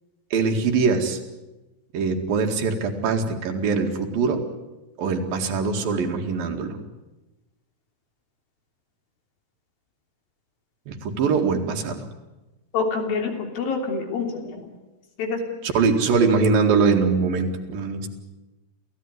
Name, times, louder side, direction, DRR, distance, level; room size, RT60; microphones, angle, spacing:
voice 1, 0.3-1.2 1.9-4.5 5.0-6.8 10.9-12.1 15.6-18.1, right 4 dB, 80° right, 4 dB, 3.9 m, -22 dB
voice 2, 12.7-14.7 15.2-15.4, left 4 dB, 85° left, 3 dB, 5.1 m, -26 dB
27.5 x 16.0 x 9.6 m, 1.1 s
omnidirectional pair, 4.0 m